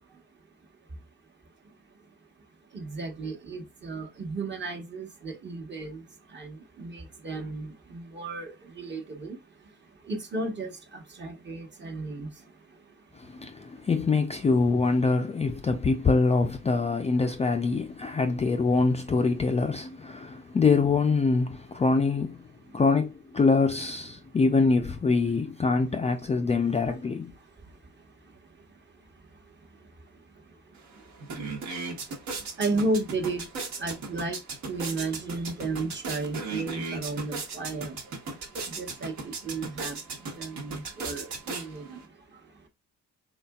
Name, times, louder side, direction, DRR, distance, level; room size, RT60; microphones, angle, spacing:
voice 1, 2.7-6.0 6.3-9.4 10.1-12.3 32.6-33.5 33.8-34.4 34.7-38.0 38.8-40.0 40.3-42.0, right 3 dB, 35° right, 1.1 m, -33 dB
voice 2, 13.2-22.4 22.7-27.3, left 4 dB, 20° left, 0.4 m, -24 dB
sound 1, 30.7-30.8 31.1-42.0, right 4 dB, 70° right, 1.2 m, -37 dB
4.1 x 3.8 x 2.3 m
cardioid pair, 135°, 31 cm